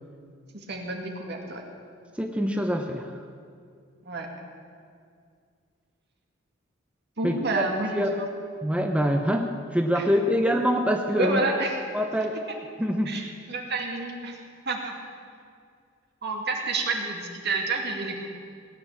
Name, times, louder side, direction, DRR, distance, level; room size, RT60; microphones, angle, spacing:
voice 1, 0.7-1.6 4.1-4.3 7.2-8.3 9.9-10.1 11.1-11.8 13.1-13.2 13.5-14.4 14.7-14.9 16.2-18.3, right 3 dB, 60° right, 2 dB, 2.2 m, -29 dB
voice 2, 2.2-3.2 7.2-7.7 8.0-8.2 8.6-11.4 11.9-12.4 12.8-13.2, equal, 5° right, 3 dB, 0.7 m, -25 dB
18.5 x 9.7 x 7.4 m, 2.2 s
head